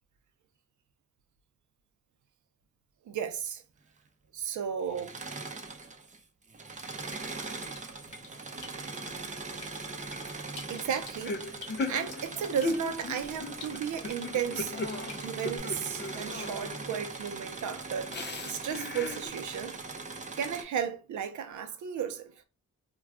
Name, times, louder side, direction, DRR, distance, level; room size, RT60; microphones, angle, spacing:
voice 1, 3.1-3.6 4.3-5.2 10.7-11.6 11.9-14.8 15.2-19.8 20.4-22.4, right 8 dB, 70° right, 0.6 m, -34 dB
Engine / Mechanisms, 4.9-6.2 6.5-20.6, right 3 dB, 25° right, 0.5 m, -41 dB
Drip, 6.8-15.6, left 3 dB, 75° left, 1.0 m, -52 dB
sound 1, 11.2-17.0 18.1-19.3, left 3 dB, 35° left, 0.4 m, -37 dB
2.3 x 2.2 x 3.4 m
cardioid pair, 80°, 30 cm